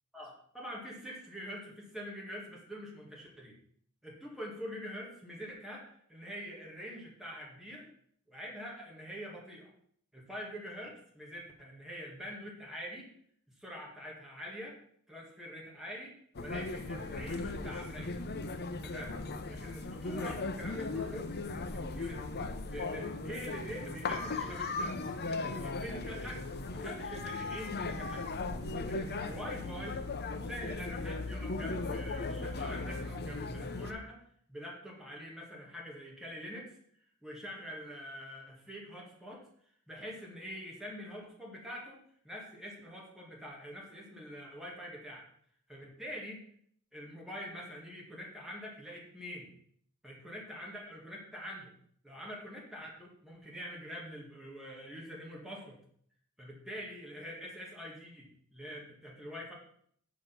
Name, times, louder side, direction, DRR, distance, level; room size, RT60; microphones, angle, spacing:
voice 1, 0.1-3.5 4.0-7.9 8.3-9.7 10.1-13.1 13.5-14.8 15.1-18.2 18.8-19.1 19.5-21.3 21.5-22.3 22.7-24.9 25.3-28.3 28.8-30.0 30.5-34.2 34.5-36.7 37.2-39.4 39.9-42.0 42.2-45.2 45.7-46.4 46.9-49.5 50.0-51.7 52.0-55.8 56.4-59.5, equal, ahead, -3 dB, 2.0 m, -45 dB
sound 1, 16.3-33.9, left 3 dB, 50° left, 0.8 m, -37 dB
9.1 x 4.9 x 5.9 m, 0.64 s
head